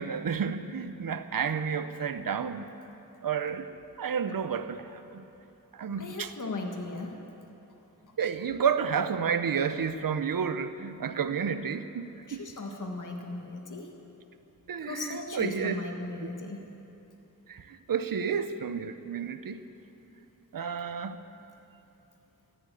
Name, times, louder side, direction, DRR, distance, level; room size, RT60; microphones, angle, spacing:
voice 1, 0.0-2.7 3.2-3.7 4.0-5.2 5.7-6.3 8.2-12.4 14.7-15.8 17.5-19.7 20.5-21.2, right 7 dB, 70° right, 11 dB, 0.8 m, -31 dB
voice 2, 6.0-7.2 12.3-13.9 14.8-16.6, left 3 dB, 60° left, 2 dB, 1.8 m, -37 dB
14.0 x 11.5 x 8.4 m, 3.0 s
cardioid pair, 60°, 36 cm